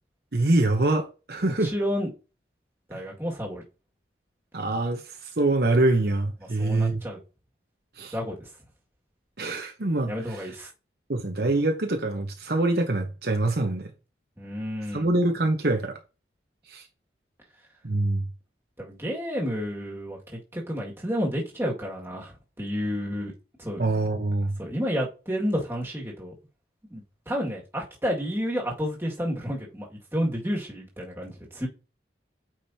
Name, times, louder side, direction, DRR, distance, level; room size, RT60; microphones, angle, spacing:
voice 1, 0.3-1.7 2.9-3.0 4.5-7.0 8.0-8.1 9.4-10.5 11.1-13.9 14.9-16.0 16.7-16.8 17.8-18.3 23.8-24.6, right 2 dB, 55° right, 0.9 m, -25 dB
voice 2, 1.4-2.1 2.9-3.6 6.6-7.2 8.1-8.5 10.1-10.7 14.4-15.1 18.8-23.3 23.6-23.8 24.6-26.3 26.9-31.7, equal, 15° right, 2.0 m, -30 dB
8.7 x 5.1 x 2.8 m
head